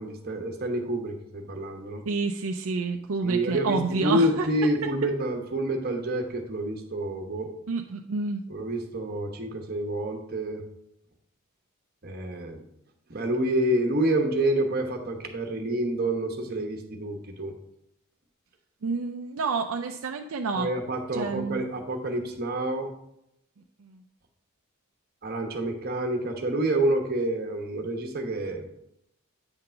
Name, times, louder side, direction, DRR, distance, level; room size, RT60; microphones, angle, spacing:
voice 1, 0.0-2.0 3.2-7.5 8.5-10.6 12.0-12.6 13.1-17.5 20.5-22.9 25.2-28.7, right 1 dB, 45° right, 3 dB, 1.1 m, -28 dB
voice 2, 2.1-4.5 7.7-8.4 18.8-20.7 21.1-21.7 23.8-24.0, right 4 dB, 75° right, 4 dB, 0.5 m, -29 dB
8.8 x 3.8 x 5.6 m, 0.79 s
head